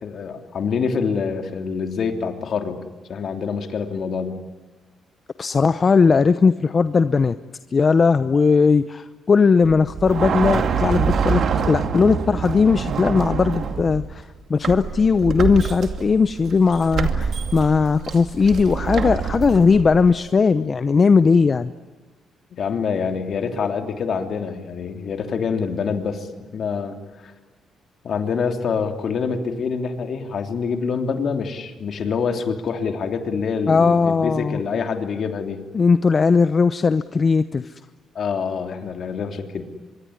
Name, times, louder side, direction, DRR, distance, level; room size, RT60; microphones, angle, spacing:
voice 1, 0.0-2.8 3.1-4.4 22.6-26.3 26.5-27.3 28.0-35.6 38.1-39.6, left 5 dB, 60° left, 5 dB, 3.2 m, -26 dB
voice 2, 5.4-7.3 7.7-11.4 11.7-21.7 33.7-34.6 35.7-37.7, left 5 dB, 35° left, 12 dB, 0.8 m, -18 dB
sound 1, 9.6-14.2 14.6-20.1, right 6 dB, 60° right, 2.4 m, -25 dB
25.0 x 23.5 x 9.9 m, 1.4 s
cardioid pair, 90°, 0 cm